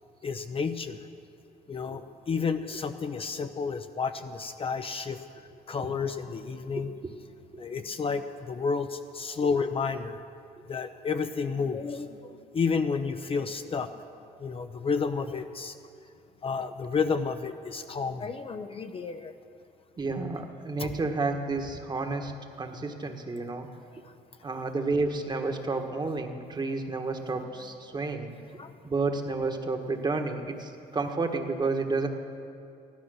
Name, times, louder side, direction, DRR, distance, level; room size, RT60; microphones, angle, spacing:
voice 1, 0.2-1.0 1.7-5.2 5.7-6.9 7.6-10.2 10.7-14.0 14.4-15.7 16.4-19.3 20.8-20.9 28.6-28.7, left 5 dB, 35° left, 8 dB, 0.7 m, -31 dB
voice 2, 20.0-22.3 22.6-23.7 24.4-28.3 28.8-32.1, right 3 dB, 25° right, 4 dB, 1.4 m, -30 dB
15.0 x 12.5 x 6.4 m, 2.4 s
cardioid pair, 110°, 17 cm